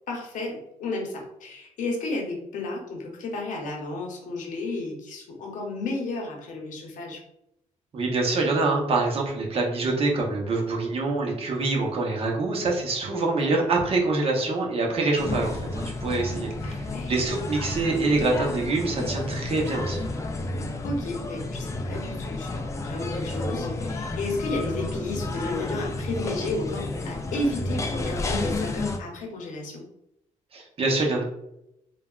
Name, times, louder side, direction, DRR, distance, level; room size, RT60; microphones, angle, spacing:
voice 1, 0.1-7.2 13.1-13.6 16.6-17.1 20.8-29.8, left 2 dB, 75° left, 0 dB, 0.8 m, -33 dB
voice 2, 7.9-20.0 30.5-31.2, right 3 dB, 45° right, 0 dB, 0.8 m, -25 dB
sound 1, 15.2-29.0, left 2 dB, 25° left, 0.4 m, -31 dB
3.2 x 2.3 x 2.3 m, 0.81 s
cardioid pair, 100°, 13 cm